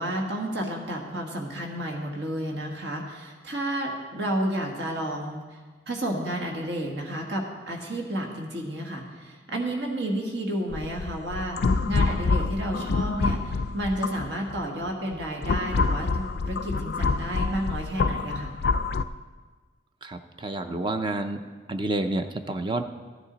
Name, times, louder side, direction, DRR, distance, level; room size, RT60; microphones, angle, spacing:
voice 1, 0.0-11.6 11.9-18.5, right 1 dB, 70° right, 1 dB, 1.6 m, -31 dB
sound 1, 10.7-14.6 15.1-19.0, left 4 dB, 55° left, 0.3 m, -26 dB
voice 2, 20.0-21.4 21.7-22.9, right 2 dB, 25° right, 7 dB, 0.4 m, -29 dB
14.5 x 9.9 x 4.0 m, 1.4 s
head